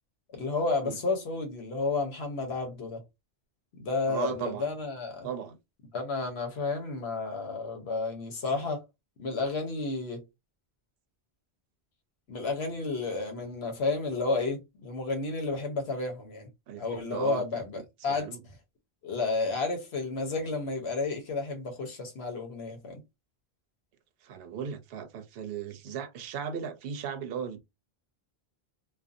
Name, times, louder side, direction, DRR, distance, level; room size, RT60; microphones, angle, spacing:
voice 1, 0.3-3.0 3.8-5.3 5.9-8.8 9.2-10.2 12.3-16.5 16.8-18.4 19.0-23.0, left 3 dB, 80° left, 1.1 m, -31 dB
voice 2, 4.1-4.8 5.2-5.6 8.5-8.6 16.7-17.4 17.7-18.4 24.2-27.6, right 7 dB, 70° right, 0.7 m, -37 dB
2.5 x 2.3 x 2.5 m
omnidirectional pair, 1.1 m